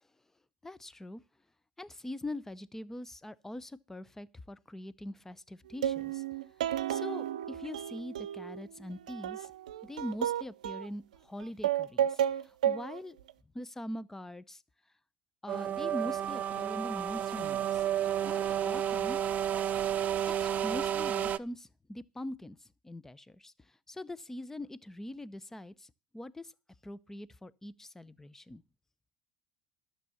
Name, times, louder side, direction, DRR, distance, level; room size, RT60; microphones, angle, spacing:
voice 1, 0.6-1.2 1.8-6.2 6.9-9.5 9.8-13.2 13.5-14.6 15.4-17.8 18.3-19.2 20.3-22.6 22.8-26.5 26.8-28.6, left 1 dB, 10° left, 0.7 m, -42 dB
sound 1, 5.8-8.6 8.9-10.9 11.4-13.0 13.3-13.4, right 10 dB, 85° right, 0.6 m, -32 dB
sound 2, 15.5-21.4, right 10 dB, 40° right, 0.6 m, -31 dB
12.0 x 6.8 x 7.1 m
hypercardioid pair, 80°, 4 cm